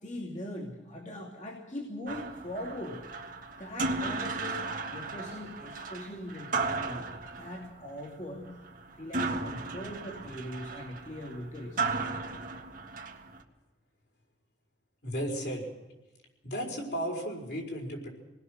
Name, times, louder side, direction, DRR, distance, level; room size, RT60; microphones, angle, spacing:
voice 1, 0.0-3.0 3.6-7.1 7.4-8.5 9.0-12.0, left 1 dB, 40° left, -2 dB, 2.7 m, -41 dB
sound 1, 2.1-13.4, right 3 dB, 50° right, 1.7 m, -35 dB
voice 2, 15.0-15.7 16.4-18.1, equal, 65° left, 0 dB, 5.1 m, -34 dB
27.0 x 20.0 x 6.6 m, 1.1 s
head